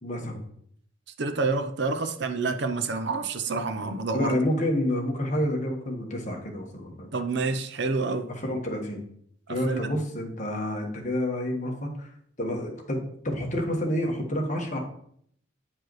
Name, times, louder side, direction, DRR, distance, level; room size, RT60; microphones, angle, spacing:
voice 1, 0.0-0.4 4.1-7.1 8.3-9.0 9.5-12.1 12.4-14.8, left 1 dB, 35° left, 1 dB, 1.3 m, -29 dB
voice 2, 1.2-4.3 7.1-8.3 9.5-9.8, right 3 dB, 55° right, 8 dB, 0.6 m, -28 dB
9.3 x 4.7 x 3.1 m, 0.66 s
head